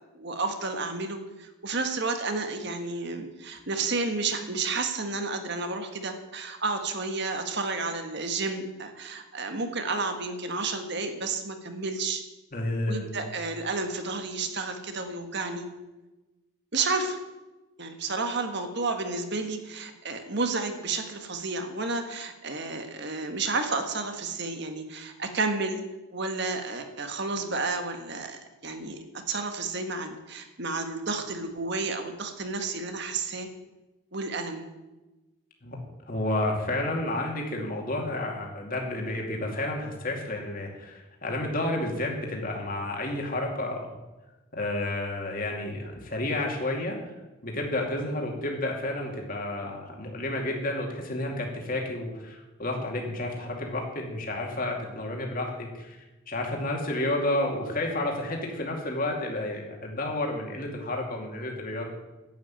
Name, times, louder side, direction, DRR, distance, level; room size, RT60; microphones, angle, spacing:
voice 1, 0.1-12.2 12.9-15.7 16.7-17.2 17.8-25.8 26.1-29.0 29.3-33.5 34.1-34.6, right 3 dB, 50° right, 6 dB, 1.6 m, -31 dB
voice 2, 12.5-13.1 35.6-35.8 36.1-43.9 44.5-47.1 47.4-61.9, left 1 dB, 40° left, 1 dB, 2.5 m, -31 dB
11.0 x 8.5 x 9.0 m, 1.1 s
head